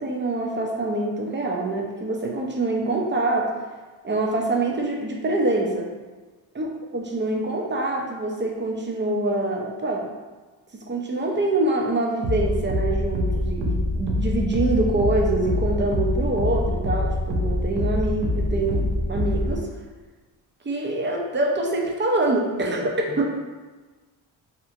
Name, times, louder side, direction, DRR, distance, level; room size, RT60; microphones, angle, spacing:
voice 1, 0.0-3.7 4.0-5.9 6.5-6.7 6.9-10.1 10.7-19.7 20.6-23.4, right 2 dB, 25° right, 0 dB, 0.5 m, -25 dB
sound 1, 12.2-19.6, left 1 dB, 70° right, 0.7 m, -25 dB
2.9 x 2.4 x 2.4 m, 1.3 s
supercardioid pair, 60°, 48 cm